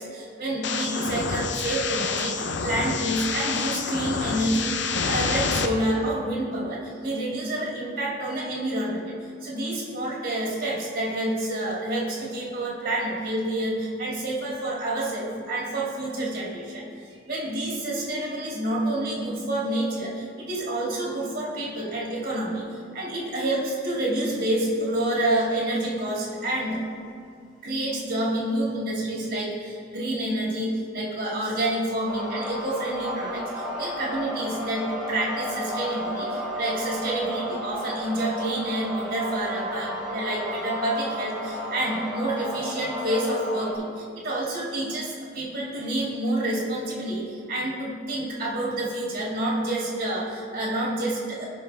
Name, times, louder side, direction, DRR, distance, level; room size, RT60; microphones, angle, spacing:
voice 1, 0.0-16.9 17.3-26.8 27.6-51.5, right 1 dB, 45° right, -4 dB, 2.2 m, -28 dB
sound 1, 0.6-5.7, left 5 dB, 65° left, 0.6 m, -28 dB
sound 2, 32.1-43.7, equal, ahead, 1.4 m, -33 dB
16.5 x 5.6 x 3.4 m, 2.3 s
head